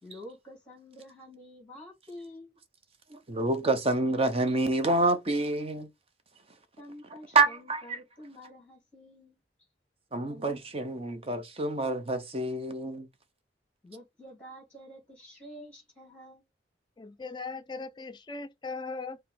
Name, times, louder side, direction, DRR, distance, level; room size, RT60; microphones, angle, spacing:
voice 1, 0.0-2.6 6.8-9.4 13.8-16.4, left 1 dB, 10° left, 2.1 m, -48 dB
voice 2, 3.1-5.9 7.3-8.0 10.1-13.1, right 2 dB, 35° right, 0.7 m, -27 dB
voice 3, 17.0-19.2, left 4 dB, 25° left, 0.4 m, -39 dB
4.6 x 2.1 x 3.8 m
head